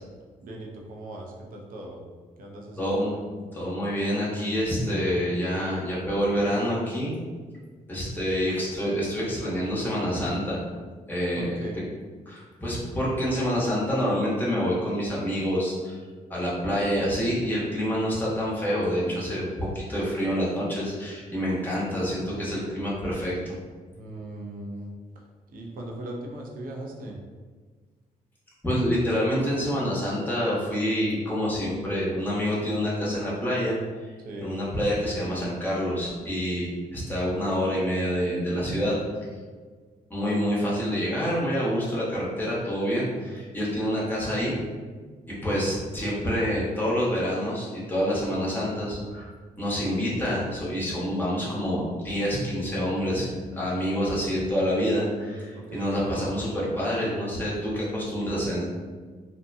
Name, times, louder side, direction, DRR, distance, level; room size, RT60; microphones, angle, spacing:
voice 1, 0.4-2.0 2.4-3.2 11.3-11.8 23.9-24.9 25.5-27.2 34.2-34.5 55.5-56.2, right 1 dB, 65° right, 0 dB, 0.5 m, -38 dB
voice 2, 2.8-3.1 3.5-7.1 7.9-10.6 11.1-11.5 12.3-16.0 16.3-23.5 28.6-33.7 34.4-39.0 40.1-44.6 45.3-49.2 49.6-58.6, equal, 10° left, -7 dB, 1.0 m, -27 dB
2.7 x 2.1 x 2.5 m, 1.5 s
cardioid pair, 75°, 15 cm